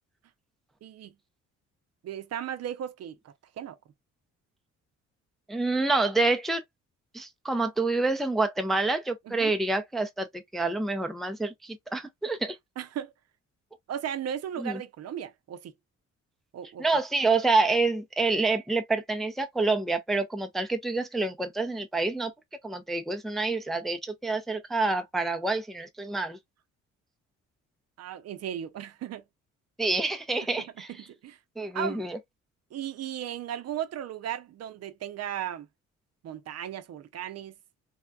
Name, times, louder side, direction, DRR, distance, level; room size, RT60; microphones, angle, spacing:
voice 1, 0.8-1.1 2.0-3.8 9.3-9.5 12.8-13.1 13.9-15.7 16.5-16.8 28.0-29.2 31.2-31.4 31.7-32.1 32.7-35.7 36.2-37.5, right 10 dB, 55° right, 0.6 m, -36 dB
voice 2, 5.5-6.6 7.1-12.6 14.6-14.8 16.8-22.3 22.6-26.4 29.8-30.9 31.6-32.2, right 3 dB, ahead, 0.4 m, -27 dB
3.5 x 2.2 x 2.2 m
cardioid pair, 90°, 30 cm